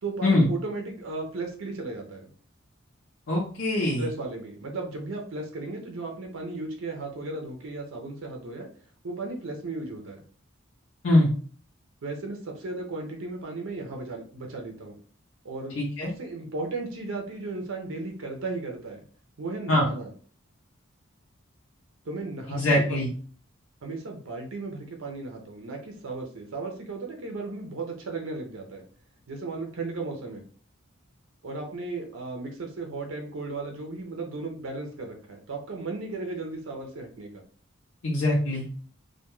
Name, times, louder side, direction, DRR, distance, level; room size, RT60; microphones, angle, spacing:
voice 1, 0.0-2.2 4.0-8.7 9.0-10.2 12.0-15.0 15.4-15.7 16.0-19.0 19.4-20.1 22.0-23.0 23.8-28.8 29.3-30.4 31.4-37.3, right 3 dB, 75° right, 3 dB, 0.5 m, -35 dB
voice 2, 3.3-4.1 11.0-11.3 15.8-16.1 19.7-19.9 22.5-23.1 38.0-38.6, left 1 dB, 70° left, -4 dB, 0.6 m, -23 dB
2.2 x 2.2 x 3.0 m, 0.44 s
head